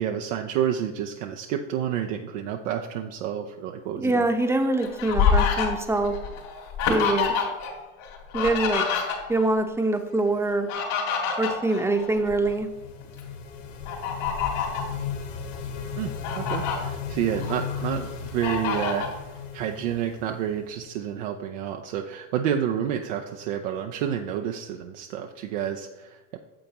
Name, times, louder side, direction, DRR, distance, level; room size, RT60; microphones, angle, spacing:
voice 1, 0.0-4.3 16.0-19.1 19.5-26.4, right 9 dB, 80° right, 3 dB, 0.6 m, -29 dB
voice 2, 4.0-6.1 6.9-7.3 8.3-8.8 9.3-10.7 11.4-12.7, right 2 dB, 5° right, 6 dB, 0.8 m, -24 dB
Fowl, 4.4-7.7 8.0-9.5 10.4-12.5 13.0-13.2 13.8-14.9 15.5-15.6 16.0-16.8 17.3-18.0 18.4-19.1, left 6 dB, 65° left, 2.6 m, -27 dB
sound 1, 12.2-21.0, left 6 dB, 85° left, 1.3 m, -35 dB
8.9 x 7.0 x 2.9 m, 1.1 s
supercardioid pair, 100°, 36 cm